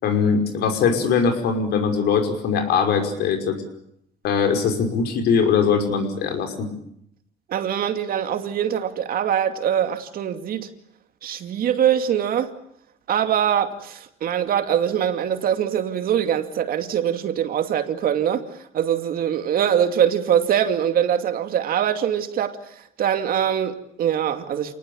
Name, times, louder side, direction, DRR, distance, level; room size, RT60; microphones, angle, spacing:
voice 1, 0.0-3.6 4.2-6.7, left 6 dB, 75° left, 5.5 m, -21 dB
voice 2, 7.5-10.7 11.2-12.5 13.1-24.7, right 9 dB, 60° right, 2.5 m, -23 dB
28.0 x 19.5 x 8.8 m
cardioid pair, 110°, 17 cm